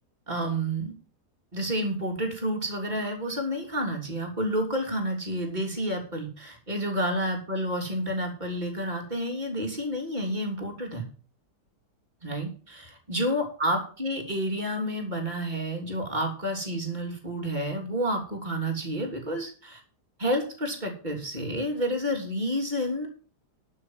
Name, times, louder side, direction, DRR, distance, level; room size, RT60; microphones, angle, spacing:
voice 1, 0.3-0.9 1.5-11.0 12.2-19.8 20.2-23.1, equal, 25° right, 1 dB, 3.4 m, -30 dB
12.0 x 6.5 x 7.5 m, 0.39 s
omnidirectional pair, 1.8 m